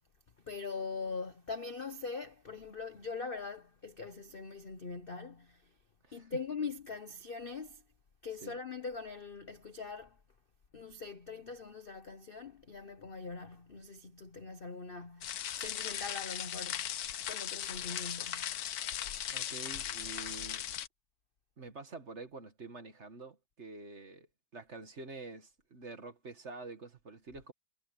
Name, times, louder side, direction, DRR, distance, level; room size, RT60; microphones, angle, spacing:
voice 1, 0.4-5.7 6.1-7.8 8.2-10.2 10.7-16.9 17.2-18.6, left 4 dB, 45° left, 0.7 m, -42 dB
sound 1, 15.2-20.9, left 10 dB, 60° left, 1.1 m, -38 dB
voice 2, 19.3-20.7 21.6-24.3 24.5-27.5, right 3 dB, 35° right, 1.7 m, -47 dB
omnidirectional pair, 2.2 m